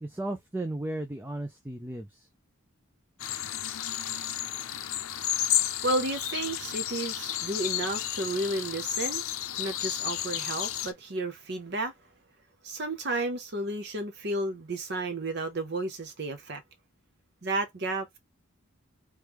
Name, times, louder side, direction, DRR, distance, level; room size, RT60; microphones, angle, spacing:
voice 1, 0.0-2.3, right 1 dB, 10° right, 0.4 m, -35 dB
sound 1, 3.2-10.9, left 11 dB, 75° left, 0.5 m, -32 dB
voice 2, 5.8-9.2 9.6-11.9 12.6-16.6 17.4-18.2, right 2 dB, 50° right, 0.8 m, -32 dB
3.2 x 3.2 x 3.5 m
head